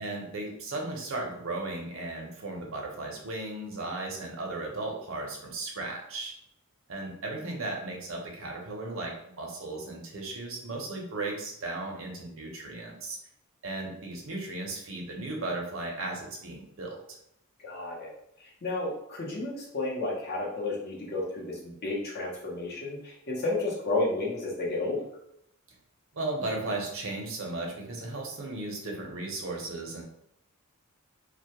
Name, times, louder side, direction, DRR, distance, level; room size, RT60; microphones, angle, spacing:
voice 1, 0.0-6.3 6.9-13.2 13.6-17.0 26.1-30.0, right 2 dB, 65° right, 0 dB, 0.6 m, -36 dB
voice 2, 17.6-18.1 18.4-25.0, left 2 dB, 50° left, -4 dB, 0.7 m, -32 dB
2.2 x 2.1 x 2.8 m, 0.76 s
head